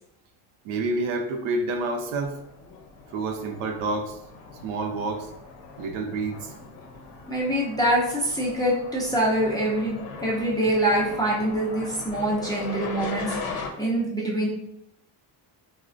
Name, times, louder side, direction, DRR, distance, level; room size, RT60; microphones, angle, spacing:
voice 1, 0.6-2.4 3.1-4.2 4.6-5.3 5.8-6.5, right 2 dB, 80° right, 5 dB, 0.6 m, -28 dB
sound 1, 2.0-13.7, left 4 dB, 85° left, 0.7 m, -39 dB
voice 2, 7.3-14.5, right 1 dB, 10° left, -6 dB, 0.4 m, -25 dB
3.8 x 2.1 x 2.5 m, 0.80 s
cardioid pair, 150°, 48 cm